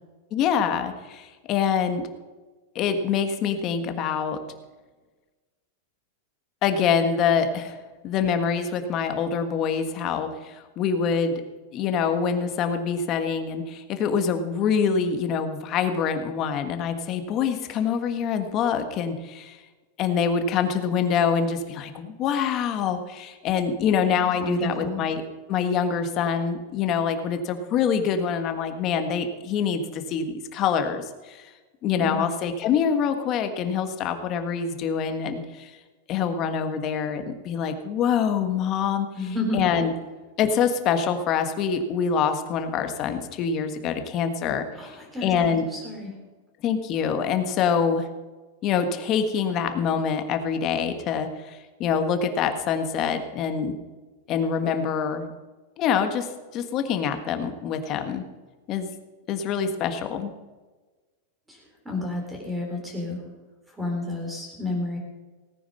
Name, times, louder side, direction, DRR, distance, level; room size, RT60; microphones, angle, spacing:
voice 1, 0.3-2.1 2.7-4.4 6.6-7.8 8.0-11.4 11.7-19.6 20.0-25.2 25.5-31.5 31.8-35.7 36.1-39.1 39.5-39.9 40.4-45.6 46.6-48.1 48.6-53.8 54.3-55.3 55.8-58.2 58.7-58.9 59.3-60.3, left 7 dB, 30° left, 7 dB, 1.5 m, -25 dB
voice 2, 24.2-25.0 32.0-32.3 39.1-39.6 44.8-46.1 61.5-63.2 63.7-65.0, left 2 dB, 5° right, 1 dB, 3.9 m, -31 dB
18.0 x 9.7 x 5.6 m, 1.2 s
supercardioid pair, 160°, 0 cm